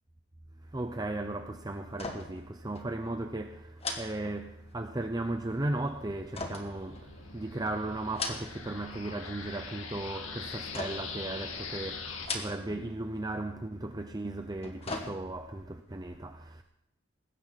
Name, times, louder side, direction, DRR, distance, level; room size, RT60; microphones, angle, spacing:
voice 1, 0.7-16.6, right 2 dB, 20° right, 0.7 m, -36 dB
sound 1, 1.9-2.5 2.8-2.9 3.8-4.9 6.3-7.5 8.0-8.8 9.1-9.7 10.7-11.2 12.1-12.9 13.2-13.3 14.4-15.6 16.0-16.1, left 3 dB, 30° left, 2.0 m, -39 dB
sound 2, 4.9-12.3, left 5 dB, 80° left, 2.3 m, -43 dB
20.0 x 17.0 x 4.2 m
head